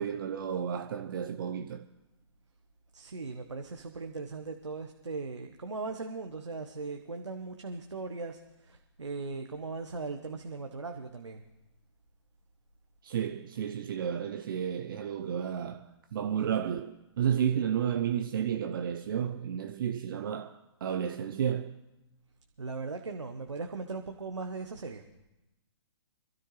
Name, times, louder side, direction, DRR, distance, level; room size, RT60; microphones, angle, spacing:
voice 1, 0.0-1.8 13.0-15.8 16.1-21.8, right 8 dB, 50° right, 0.7 m, -32 dB
voice 2, 2.9-11.4 22.6-25.0, right 3 dB, 80° right, 1.2 m, -39 dB
26.0 x 13.0 x 3.3 m
figure-of-eight pair, 125°, 15 cm